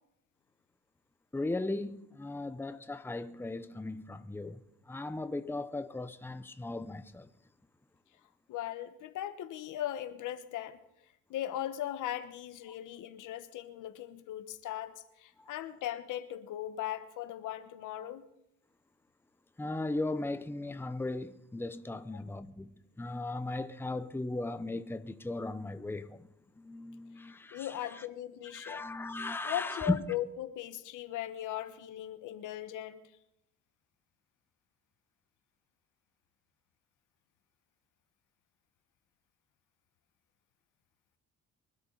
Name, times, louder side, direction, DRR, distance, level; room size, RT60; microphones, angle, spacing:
voice 1, 1.3-7.3 15.4-15.5 19.6-26.3 26.6-28.0 28.5-30.0, left 2 dB, 5° left, 0.8 m, -37 dB
voice 2, 8.5-10.8 11.3-18.2 22.1-22.2 27.5-28.8 29.4-33.0, left 12 dB, 85° left, 1.2 m, -38 dB
23.5 x 12.5 x 4.0 m
cardioid pair, 90°, 30 cm